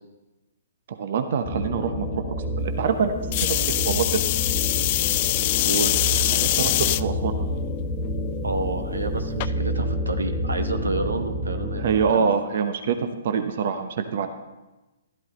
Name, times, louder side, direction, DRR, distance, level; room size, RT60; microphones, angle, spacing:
voice 1, 0.9-2.2 2.6-3.1 3.5-4.2 6.3-7.5 11.8-13.0 13.2-14.3, right 6 dB, 50° right, 8 dB, 0.9 m, -25 dB
sound 1, 1.4-12.1, equal, 10° left, 1.3 m, -29 dB
sound 2, 3.3-7.0 7.7-8.1 9.4-9.5, left 16 dB, 40° left, 0.3 m, -23 dB
voice 2, 8.4-12.3, right 3 dB, 80° right, 7 dB, 1.0 m, -29 dB
13.0 x 12.0 x 3.8 m, 1.1 s
figure-of-eight pair, 125°, 0 cm